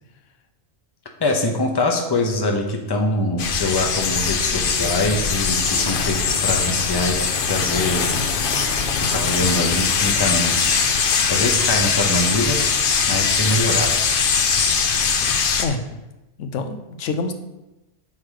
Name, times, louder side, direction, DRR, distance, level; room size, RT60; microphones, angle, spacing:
voice 1, 1.2-8.1 9.0-10.8 11.3-13.9, left 2 dB, 20° left, 2 dB, 0.8 m, -23 dB
sound 1, 3.4-15.7, left 5 dB, 55° left, 0.8 m, -21 dB
voice 2, 15.3-16.0 16.4-17.3, left 3 dB, 85° left, 7 dB, 1.1 m, -27 dB
5.7 x 4.7 x 6.5 m, 0.98 s
omnidirectional pair, 1.2 m